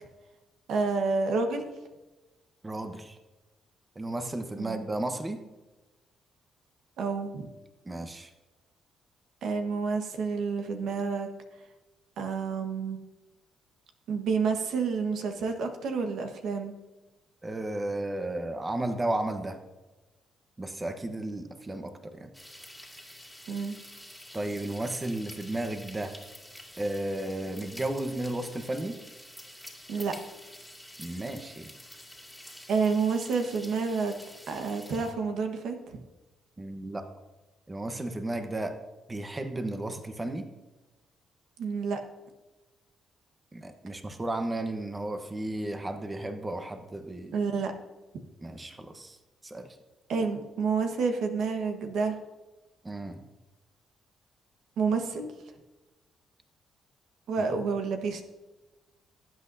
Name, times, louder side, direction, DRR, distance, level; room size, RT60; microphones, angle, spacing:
voice 1, 0.7-1.7 4.6-4.8 7.0-7.5 9.4-11.3 12.2-13.0 14.1-16.7 23.5-23.8 29.9-30.1 32.7-34.1 34.5-36.0 41.6-42.0 47.3-47.7 50.1-52.2 54.8-55.3 57.3-58.2, right 5 dB, 75° right, 5 dB, 1.3 m, -29 dB
voice 2, 2.6-3.2 3.9-5.4 7.8-8.3 17.4-19.6 20.6-22.3 24.3-26.1 26.8-29.0 31.0-31.7 36.6-37.1 37.7-38.8 39.1-40.4 43.5-47.4 48.4-49.2 49.4-49.8 52.8-53.3 57.5-57.6, right 1 dB, 20° right, 7 dB, 1.1 m, -33 dB
sound 1, 22.3-35.1, left 1 dB, ahead, 2.4 m, -48 dB
18.5 x 8.2 x 2.7 m, 1.1 s
cardioid pair, 90°, 0 cm